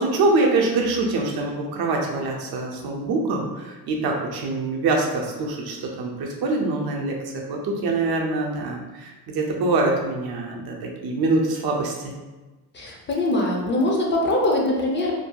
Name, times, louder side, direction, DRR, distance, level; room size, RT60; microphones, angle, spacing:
voice 1, 0.0-12.1, right 3 dB, 75° right, 0 dB, 0.6 m, -24 dB
voice 2, 12.7-15.1, left 1 dB, 30° left, -2 dB, 0.4 m, -22 dB
2.6 x 2.6 x 2.2 m, 1.2 s
cardioid pair, 130°, 38 cm